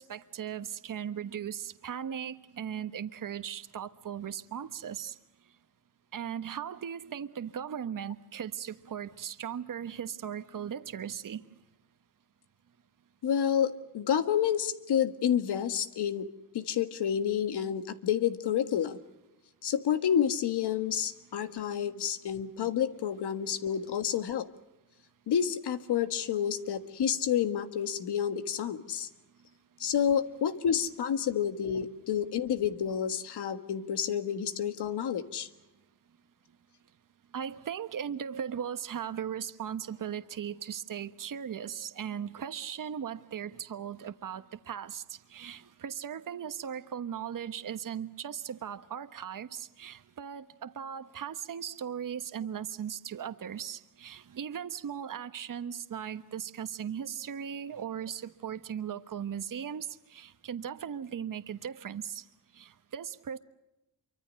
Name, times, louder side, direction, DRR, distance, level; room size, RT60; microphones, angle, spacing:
voice 1, 0.0-5.1 6.1-11.4 21.4-21.5 37.3-45.0 45.3-59.9 60.1-62.2 62.6-63.4, right 8 dB, 55° right, 11 dB, 1.2 m, -38 dB
voice 2, 13.2-16.3 16.5-19.0 19.6-24.5 25.3-29.1 29.8-35.5, left 9 dB, 85° left, 10 dB, 1.7 m, -29 dB
27.0 x 24.5 x 6.4 m, 0.96 s
cardioid pair, 90°, 39 cm